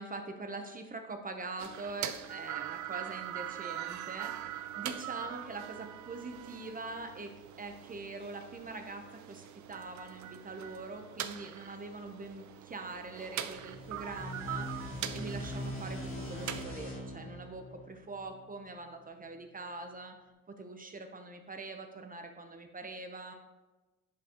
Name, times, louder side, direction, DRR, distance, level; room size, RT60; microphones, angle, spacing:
voice 1, 0.0-20.2 20.5-23.3, right 3 dB, 30° right, 5 dB, 0.7 m, -43 dB
sound 1, 1.6-16.6, right 11 dB, 70° right, 0.5 m, -42 dB
sound 2, 13.5-18.9, left 1 dB, 45° left, 1.8 m, -42 dB
10.5 x 4.1 x 2.9 m, 1.2 s
cardioid pair, 90°, 30 cm